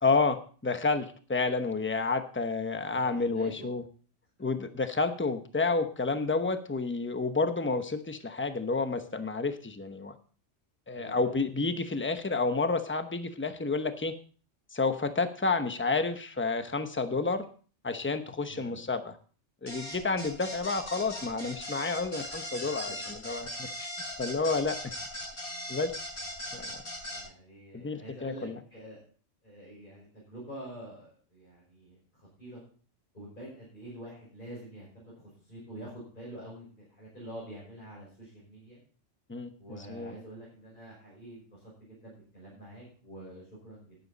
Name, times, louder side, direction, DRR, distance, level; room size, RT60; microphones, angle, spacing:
voice 1, 0.0-3.8 4.4-10.2 10.9-14.1 14.7-17.4 17.8-19.1 19.6-23.9 24.2-24.8 25.7-25.9 26.5-26.8 27.7-28.6 39.3-40.1, left 3 dB, 10° left, 8 dB, 0.8 m, -30 dB
voice 2, 2.9-3.7 10.9-11.3 18.5-18.8 22.8-23.0 27.1-29.0 29.4-32.6 33.1-38.8 39.6-44.0, right 1 dB, 40° left, -6 dB, 5.3 m, -47 dB
sound 1, 19.7-27.2, left 1 dB, 75° left, 7.9 m, -39 dB
12.0 x 10.0 x 4.0 m, 0.41 s
omnidirectional pair, 1.2 m